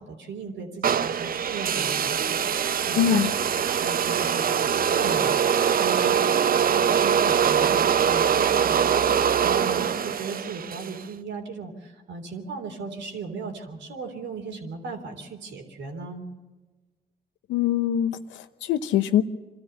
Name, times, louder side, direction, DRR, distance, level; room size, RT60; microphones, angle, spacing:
voice 1, 0.0-3.2 3.7-16.2, right 4 dB, 70° right, 3 dB, 3.5 m, -37 dB
sound 1, 0.8-11.0, right 8 dB, 50° right, 0.7 m, -23 dB
voice 2, 3.0-3.3 17.5-19.2, left 10 dB, 80° left, 12 dB, 0.9 m, -23 dB
24.5 x 13.5 x 8.0 m, 1.3 s
supercardioid pair, 50°, 19 cm